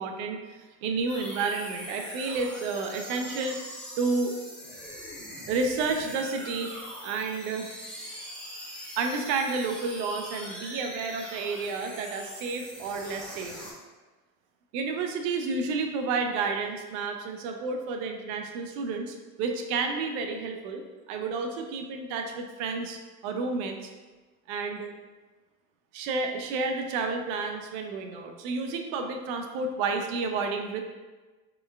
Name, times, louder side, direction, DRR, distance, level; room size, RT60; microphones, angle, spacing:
voice 1, 0.0-4.3 5.5-7.7 9.0-13.6 14.7-20.8 21.1-23.9 24.5-24.9 25.9-30.8, right 4 dB, 60° right, 5 dB, 0.7 m, -31 dB
sound 1, 1.1-13.7, equal, ahead, 0.8 m, -42 dB
4.2 x 3.2 x 2.3 m, 1.3 s
hypercardioid pair, 85°, 45 cm